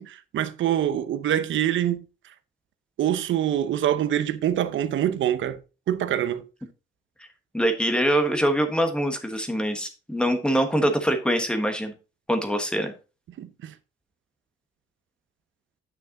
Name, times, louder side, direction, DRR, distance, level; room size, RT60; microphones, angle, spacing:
voice 1, 0.0-2.0 3.0-5.6 5.9-6.4 13.4-13.7, right 11 dB, 70° right, 0.8 m, -25 dB
voice 2, 7.5-11.9 12.3-12.9, equal, 5° left, 1.3 m, -24 dB
9.4 x 5.9 x 3.8 m
wide cardioid pair, 170°, 20 cm